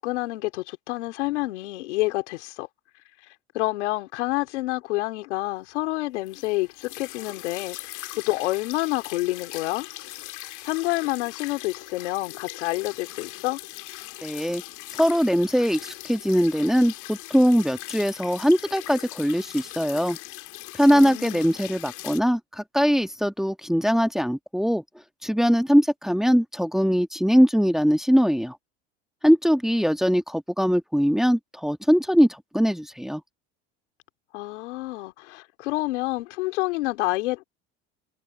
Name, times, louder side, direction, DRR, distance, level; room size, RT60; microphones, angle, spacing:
voice 1, 0.0-2.7 3.5-9.9 10.6-13.6 20.9-21.5 34.3-37.4, left 19 dB, 85° left, 3.6 m, -28 dB
sound 1, 6.3-22.2, left 17 dB, 60° left, 2.1 m, -40 dB
voice 2, 14.2-14.6 15.0-20.2 20.8-24.8 25.2-28.6 29.2-33.2, equal, ahead, 1.6 m, -21 dB
supercardioid pair, 90°, 34 cm